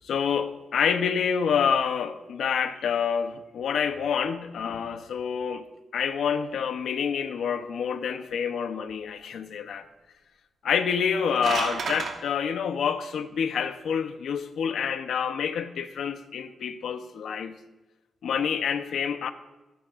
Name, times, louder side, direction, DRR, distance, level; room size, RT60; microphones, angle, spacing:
voice 1, 0.1-5.6 5.9-9.9 10.6-17.6 18.2-19.3, left 7 dB, 75° left, 0.9 m, -27 dB
sound 1, 11.0-12.1, right 5 dB, 60° right, 2.5 m, -30 dB
24.0 x 12.5 x 2.6 m
wide cardioid pair, 155°, 0 cm